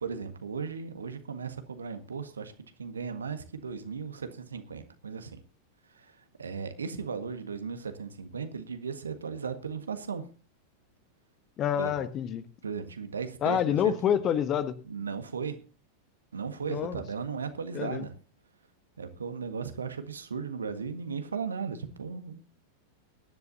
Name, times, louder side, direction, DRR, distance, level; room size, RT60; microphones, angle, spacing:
voice 1, 0.0-2.5 2.8-5.4 5.9-10.3 11.7-12.0 12.6-14.2 14.8-15.6 16.3-18.1 19.0-22.4, right 6 dB, 70° right, 9 dB, 1.6 m, -36 dB
voice 2, 11.6-12.5 13.4-14.8 16.7-17.0 17.7-18.1, left 9 dB, 30° left, 13 dB, 1.3 m, -27 dB
22.0 x 11.0 x 2.7 m, 0.35 s
figure-of-eight pair, 90°, 0 cm